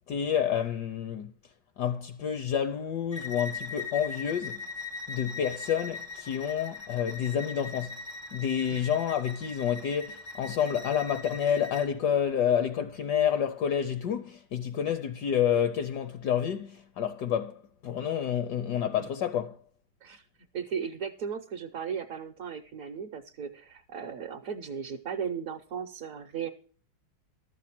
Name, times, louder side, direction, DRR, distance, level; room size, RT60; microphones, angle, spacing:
voice 1, 0.1-1.3 1.8-4.7 5.1-8.0 8.3-19.6, left 8 dB, 70° left, 1.1 m, -29 dB
Bowed string instrument, 3.1-11.9, left 4 dB, 5° right, 0.4 m, -40 dB
voice 2, 20.5-26.5, right 7 dB, 60° right, 0.9 m, -36 dB
12.5 x 7.4 x 5.9 m
omnidirectional pair, 2.2 m